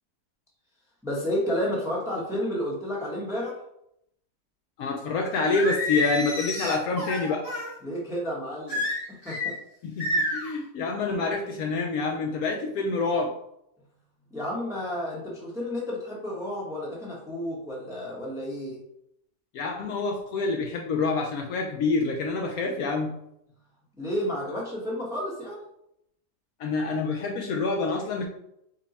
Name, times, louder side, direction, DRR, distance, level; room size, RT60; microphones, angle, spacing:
voice 1, 1.0-3.6 7.8-8.8 9.1-9.5 14.3-18.8 24.0-25.6, equal, 5° right, -4 dB, 0.7 m, -31 dB
voice 2, 4.8-7.5 9.8-13.3 19.5-23.1 26.6-28.2, left 3 dB, 70° left, 1 dB, 0.9 m, -27 dB
Singing, 5.5-7.7 8.7-9.5 10.0-10.5, left 1 dB, 25° left, 1.0 m, -29 dB
5.3 x 2.2 x 4.0 m, 0.78 s
omnidirectional pair, 1.8 m